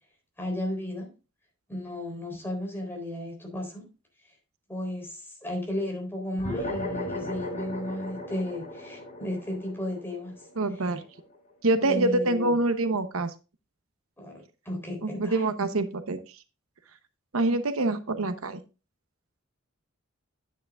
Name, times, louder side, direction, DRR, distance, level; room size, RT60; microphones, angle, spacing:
voice 1, 0.4-1.1 1.7-3.9 4.7-10.4 11.8-12.5 14.2-15.4, left 1 dB, 10° left, 1 dB, 3.8 m, -34 dB
sound 1, 6.4-11.2, left 1 dB, 35° left, 3.6 m, -36 dB
voice 2, 10.6-11.0 11.6-13.3 15.0-16.2 17.3-18.6, right 2 dB, 85° right, 10 dB, 0.9 m, -25 dB
10.0 x 9.4 x 2.4 m, 0.30 s
head